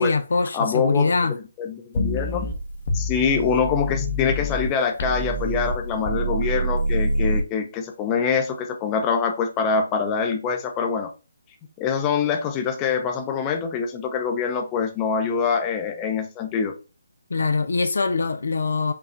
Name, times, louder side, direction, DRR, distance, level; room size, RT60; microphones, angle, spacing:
voice 1, 0.0-1.3 17.3-18.9, left 4 dB, 65° left, 0.5 m, -22 dB
voice 2, 0.5-1.1 1.6-2.5 2.9-11.1 11.8-16.7, left 6 dB, 20° left, 0.7 m, -24 dB
sound 1, 2.0-4.7 5.0-7.4, equal, 50° left, 1.0 m, -26 dB
5.2 x 2.4 x 4.3 m
figure-of-eight pair, 145°, 0 cm